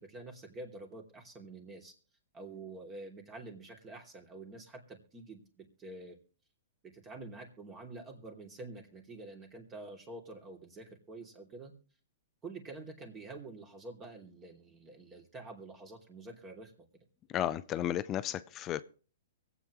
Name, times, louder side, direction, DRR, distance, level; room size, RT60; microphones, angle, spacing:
voice 1, 0.0-1.9 2.3-6.2 6.8-11.7 12.4-16.7, right 2 dB, 20° right, 2.9 m, -47 dB
voice 2, 17.3-18.8, left 11 dB, 25° left, 0.6 m, -33 dB
23.5 x 8.3 x 3.1 m
hypercardioid pair, 135°, 0 cm